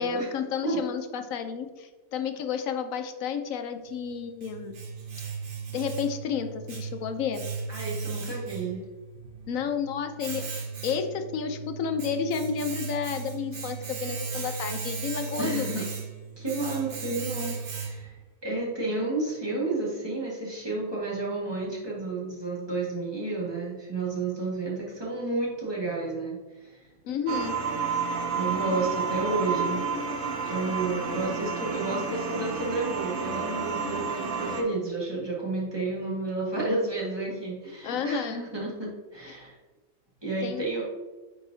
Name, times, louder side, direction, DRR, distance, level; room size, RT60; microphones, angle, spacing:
voice 1, 0.0-4.8 5.7-7.4 9.5-15.9 27.0-27.5 37.8-38.4 40.4-40.7, left 7 dB, 70° left, 8 dB, 0.9 m, -31 dB
Domestic sounds home sounds, 3.9-18.3, right 5 dB, 45° right, 0.8 m, -37 dB
voice 2, 7.7-8.8 15.4-15.9 16.4-18.1 18.4-26.4 28.3-29.8 30.4-39.5 40.2-40.8, right 3 dB, 15° right, -5 dB, 1.7 m, -31 dB
sound 1, 27.3-34.6, right 5 dB, 70° right, 1.3 m, -30 dB
8.4 x 4.9 x 2.7 m, 1.2 s
omnidirectional pair, 1.6 m